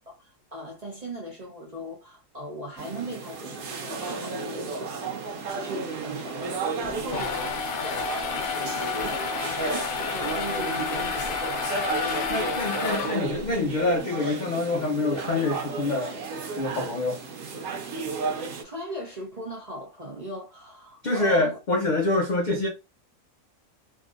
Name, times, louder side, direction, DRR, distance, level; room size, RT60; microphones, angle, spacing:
voice 1, 0.1-11.8 18.6-21.6, equal, 40° right, 0.6 m, -39 dB
sound 1, 2.8-18.6, right 4 dB, 90° right, 1.2 m, -33 dB
sound 2, 6.8-13.5, left 6 dB, 85° left, 1.1 m, -30 dB
voice 2, 12.3-16.2 16.6-17.2 21.0-22.7, left 2 dB, 60° left, 0.4 m, -26 dB
3.6 x 2.6 x 2.4 m
omnidirectional pair, 1.5 m